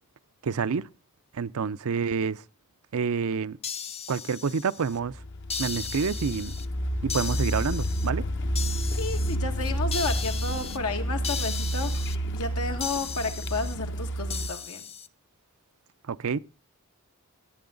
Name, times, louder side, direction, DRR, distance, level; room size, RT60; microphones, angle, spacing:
voice 1, 0.4-0.9 1.3-2.4 2.9-3.6 4.1-5.1 5.6-6.6 7.0-8.2 16.1-16.4, right 5 dB, 70° right, 0.5 m, -28 dB
sound 1, 3.6-5.0 5.5-6.7 7.1-8.1 8.5-9.4 9.9-10.8 11.2-12.2 12.8-13.7 14.3-15.1, left 6 dB, 30° left, 0.6 m, -36 dB
Car, 5.1-14.5, right 1 dB, 55° left, 1.0 m, -30 dB
voice 2, 9.0-11.9 12.3-14.9, left 3 dB, 85° left, 2.1 m, -32 dB
17.5 x 8.5 x 3.9 m
head